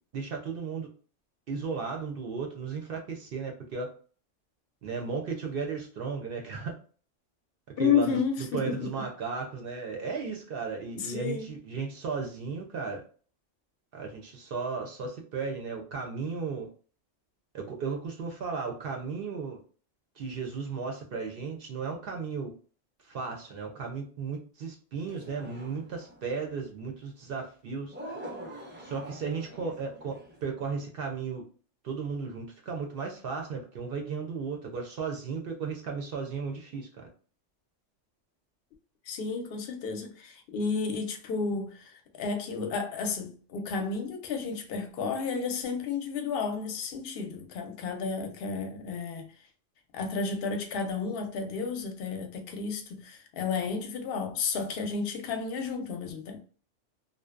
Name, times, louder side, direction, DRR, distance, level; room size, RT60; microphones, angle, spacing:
voice 1, 0.1-0.9 1.5-3.9 4.8-6.8 7.8-8.2 8.5-13.0 13.9-16.7 17.5-19.6 20.2-22.5 23.0-27.9 28.8-31.4 31.8-37.1, right 5 dB, 60° right, 0.6 m, -35 dB
voice 2, 7.8-8.9 11.0-11.5 39.1-49.3 49.9-56.4, left 5 dB, 60° left, 0.7 m, -32 dB
sound 1, 25.1-26.3 27.9-30.5, right 1 dB, 20° right, 0.3 m, -44 dB
2.6 x 2.1 x 2.3 m
omnidirectional pair, 1.3 m